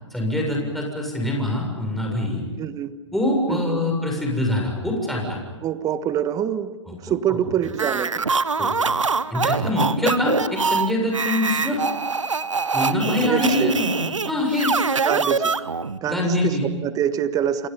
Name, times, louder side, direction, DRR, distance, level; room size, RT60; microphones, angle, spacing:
voice 1, 0.1-2.4 3.1-5.4 8.6-8.7 9.3-11.8 12.7-14.7 16.0-16.6, left 1 dB, ahead, -1 dB, 7.1 m, -24 dB
voice 2, 2.6-3.0 3.5-3.9 5.6-8.3 10.0-10.1 13.1-13.7 15.0-15.5 16.0-17.7, right 10 dB, 20° right, 12 dB, 1.4 m, -25 dB
sound 1, 7.7-16.0, right 4 dB, 85° right, 1.1 m, -24 dB
29.5 x 28.5 x 5.6 m, 1.2 s
figure-of-eight pair, 120°, 16 cm